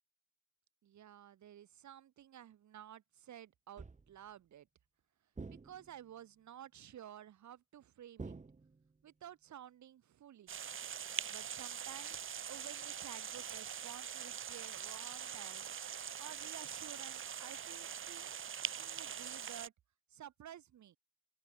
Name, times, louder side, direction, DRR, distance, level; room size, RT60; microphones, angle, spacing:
voice 1, 0.8-4.7 5.5-8.4 9.0-10.7 11.3-15.7 16.2-18.4 18.7-19.7 20.1-21.0, right 11 dB, 70° right, 7.5 m, -53 dB
sound 1, 3.8-4.3 5.4-6.1 8.2-9.1, right 4 dB, 25° right, 2.6 m, -49 dB
sound 2, 10.5-19.7, right 8 dB, 45° right, 1.1 m, -43 dB
open air
cardioid pair, 90°, 30 cm